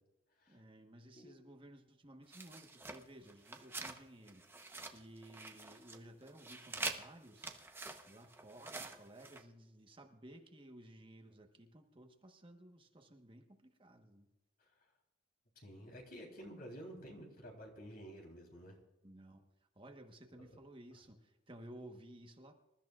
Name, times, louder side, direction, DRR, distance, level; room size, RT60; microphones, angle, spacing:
voice 1, 0.5-4.4 4.7-7.5 8.1-14.3 19.0-19.5 19.7-22.5, right 1 dB, 30° right, 3 dB, 1.2 m, -56 dB
sound 1, 2.3-4.0 4.3-6.0 6.2-9.4, right 3 dB, 15° right, 0.9 m, -46 dB
voice 2, 15.6-18.8, equal, 55° left, 1 dB, 3.6 m, -51 dB
26.5 x 13.5 x 2.4 m, 0.99 s
head